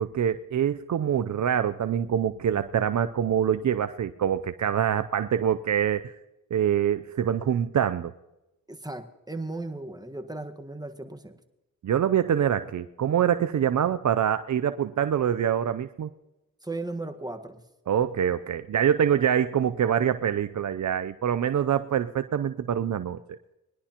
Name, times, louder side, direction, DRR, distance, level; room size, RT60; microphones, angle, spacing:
voice 1, 0.0-6.1 6.5-8.1 11.8-16.1 17.9-23.4, right 9 dB, 55° right, 11 dB, 0.6 m, -25 dB
voice 2, 8.7-11.4 16.6-17.6, right 2 dB, 10° right, 7 dB, 1.5 m, -36 dB
21.5 x 11.0 x 2.9 m, 0.95 s
cardioid pair, 55°, 35 cm